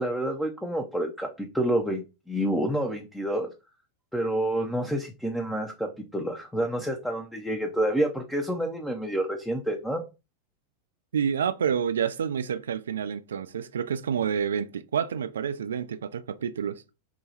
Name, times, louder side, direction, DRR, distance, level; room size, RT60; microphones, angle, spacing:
voice 1, 0.0-3.5 4.1-10.0, right 1 dB, 5° left, 0.7 m, -28 dB
voice 2, 11.1-16.8, right 7 dB, 65° right, 0.4 m, -28 dB
4.8 x 2.3 x 4.0 m
figure-of-eight pair, 90°, 0 cm